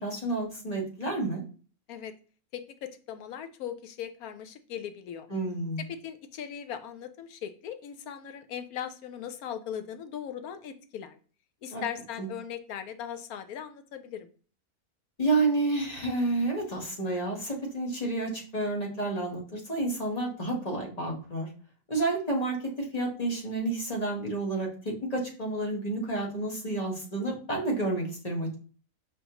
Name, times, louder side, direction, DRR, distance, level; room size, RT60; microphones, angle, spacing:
voice 1, 0.0-1.4 5.3-5.8 11.7-11.8 12.2-12.3 15.2-21.5 21.9-28.5, right 2 dB, 25° left, -1 dB, 1.3 m, -30 dB
voice 2, 2.5-5.3 5.9-11.2 11.6-14.3, left 9 dB, 80° left, 9 dB, 1.1 m, -39 dB
5.2 x 3.5 x 2.9 m, 0.39 s
omnidirectional pair, 1.6 m